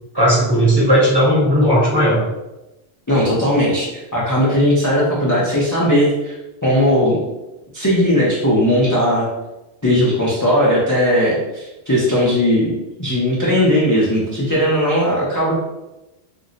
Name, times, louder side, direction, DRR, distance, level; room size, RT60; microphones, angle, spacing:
voice 1, 0.1-2.2, equal, 25° right, -6 dB, 0.8 m, -15 dB
voice 2, 3.1-6.4 6.6-7.2 7.7-9.3 9.8-12.7 13.0-15.6, equal, 25° left, -7 dB, 0.4 m, -17 dB
2.5 x 2.0 x 3.8 m, 0.99 s
omnidirectional pair, 1.2 m